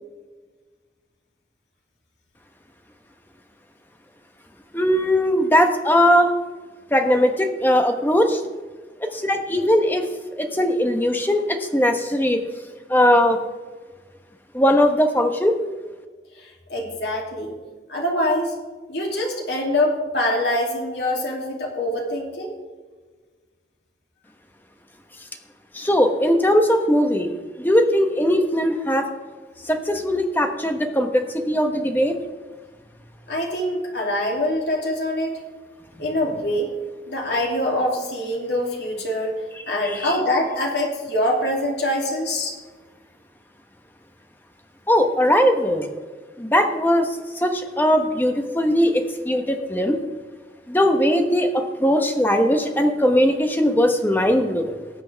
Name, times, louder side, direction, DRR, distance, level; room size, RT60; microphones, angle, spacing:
voice 1, 4.7-6.3 6.9-8.4 9.1-10.1 10.4-12.4 12.9-13.4 14.5-15.5 25.7-27.3 27.6-29.1 29.6-32.2 39.8-40.1 44.9-45.9 46.4-50.0 50.7-54.8, equal, 10° left, 5 dB, 1.0 m, -19 dB
voice 2, 16.7-17.6 17.9-18.5 18.9-22.5 33.3-35.3 36.0-36.7 37.1-39.3 39.7-42.6, left 1 dB, 80° left, -1 dB, 2.8 m, -24 dB
18.5 x 7.9 x 3.4 m, 1.4 s
head